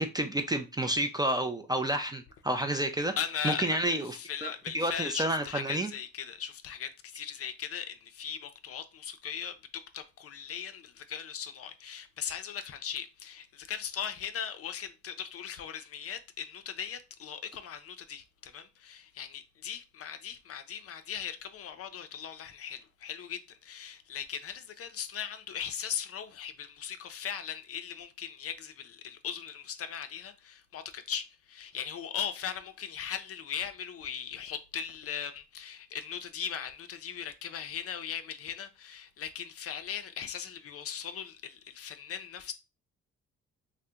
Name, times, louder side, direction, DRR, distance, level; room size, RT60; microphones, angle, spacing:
voice 1, 0.0-3.1 3.4-5.9, right 1 dB, 15° right, 0.3 m, -30 dB
voice 2, 3.2-42.5, left 8 dB, 50° left, 0.5 m, -39 dB
2.7 x 2.1 x 3.5 m
cardioid pair, 90°, 30 cm